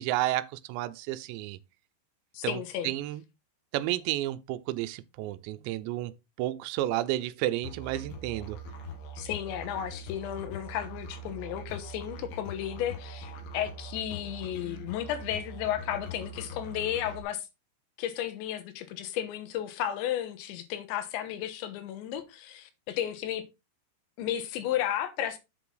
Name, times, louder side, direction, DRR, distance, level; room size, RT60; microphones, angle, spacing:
voice 1, 0.0-1.6 2.4-3.2 3.7-6.1 6.4-8.6, right 15 dB, 85° right, 2.8 m, -31 dB
voice 2, 2.3-2.9 9.2-17.5 18.0-23.4 24.2-25.4, left 11 dB, 85° left, 3.4 m, -33 dB
Musical instrument, 7.6-17.2, equal, 70° left, 3.6 m, -42 dB
7.9 x 5.8 x 3.9 m
omnidirectional pair, 5.1 m